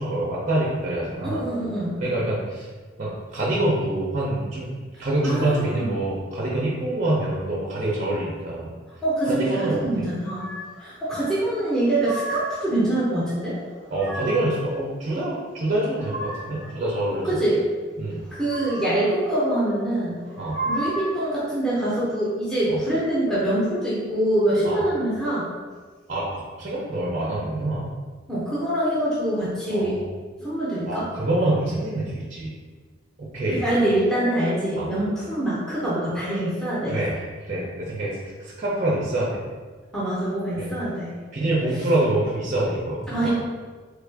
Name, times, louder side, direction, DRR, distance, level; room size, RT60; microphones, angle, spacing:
voice 1, 0.0-1.4 2.0-2.7 3.0-4.7 5.0-8.7 9.3-9.8 13.9-17.4 18.0-18.2 20.4-20.6 22.7-22.8 24.6-24.8 26.1-27.9 29.7-30.1 30.9-32.5 33.2-33.6 34.8-34.9 36.9-37.2 37.5-39.4 40.6-40.7 41.3-43.3, right 1 dB, 35° right, -6 dB, 0.5 m, -26 dB
voice 2, 1.2-2.0 5.0-5.9 9.0-10.5 10.8-13.6 17.1-17.6 18.3-20.2 20.7-25.5 28.3-30.0 30.4-31.1 33.5-37.0 39.9-41.2 43.1-43.3, right 1 dB, 5° left, -10 dB, 0.8 m, -24 dB
sound 1, 10.2-10.8 11.7-12.7 13.6-14.6 15.6-16.7 18.2-19.1 20.2-21.2, right 1 dB, 65° left, 0.8 m, -33 dB
3.2 x 2.4 x 3.3 m, 1.4 s
head